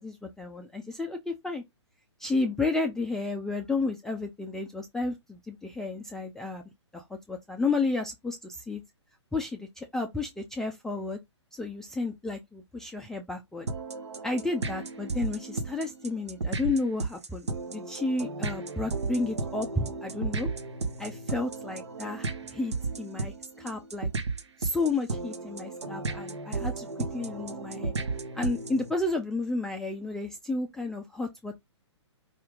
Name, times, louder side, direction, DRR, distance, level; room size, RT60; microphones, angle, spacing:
voice 1, 0.0-1.6 2.2-6.6 6.9-8.8 9.3-11.2 11.5-13.7 14.2-20.5 21.0-24.1 24.6-26.9 27.1-27.9 28.3-31.6, left 3 dB, 5° left, 0.4 m, -32 dB
sound 1, 13.7-28.9, right 3 dB, 65° right, 0.9 m, -34 dB
4.9 x 2.7 x 3.5 m
figure-of-eight pair, 120°, 15 cm